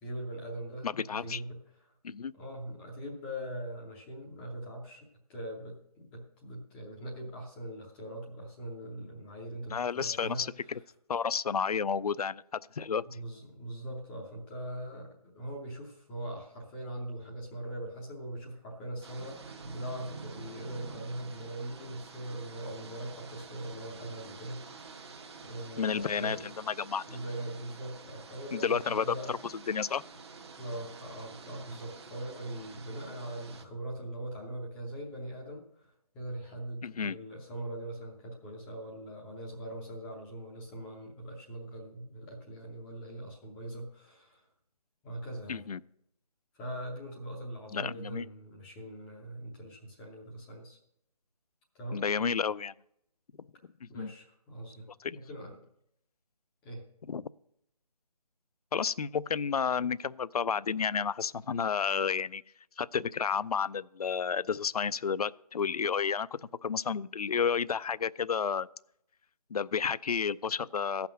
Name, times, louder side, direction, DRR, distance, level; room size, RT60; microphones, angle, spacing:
voice 1, 0.0-1.6 1.8-1.9 2.4-10.8 13.1-25.1 25.4-26.5 27.1-29.3 30.6-44.5 45.0-45.7 46.5-50.8 51.7-52.0 53.9-54.9 55.1-55.6 56.6-56.8, right 1 dB, 5° left, -1 dB, 0.6 m, -41 dB
voice 2, 0.8-1.4 2.0-2.3 9.7-10.8 11.1-13.0 25.8-27.0 28.5-29.4 29.7-30.0 36.8-37.2 45.5-45.8 47.7-48.3 51.9-52.7 53.8-54.1 55.0-55.2 57.1-57.2 58.7-62.4 62.8-68.7 69.5-71.1, left 6 dB, 65° left, 19 dB, 0.4 m, -31 dB
sound 1, 19.0-33.7, right 4 dB, 40° right, 1.1 m, -48 dB
15.5 x 5.8 x 6.3 m, 0.76 s
figure-of-eight pair, 155°, 21 cm